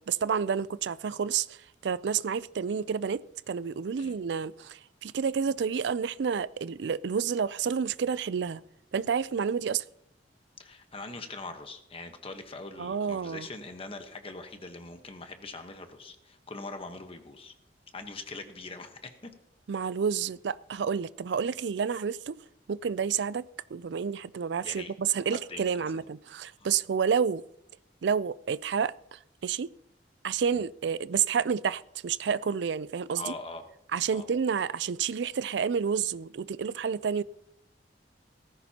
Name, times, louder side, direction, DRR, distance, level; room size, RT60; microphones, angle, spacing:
voice 1, 0.1-1.6 1.8-3.2 3.5-8.6 8.9-9.8 12.8-13.5 19.7-22.4 22.7-27.4 28.0-29.7 30.2-33.3 33.9-37.2, right 6 dB, 70° right, 0.4 m, -29 dB
voice 2, 10.6-17.5 17.9-19.3 24.6-24.9 25.2-26.0 26.6-26.7 30.5-30.6 33.1-33.6 34.1-34.3, left 3 dB, 35° left, 1.1 m, -42 dB
18.0 x 15.0 x 2.9 m
head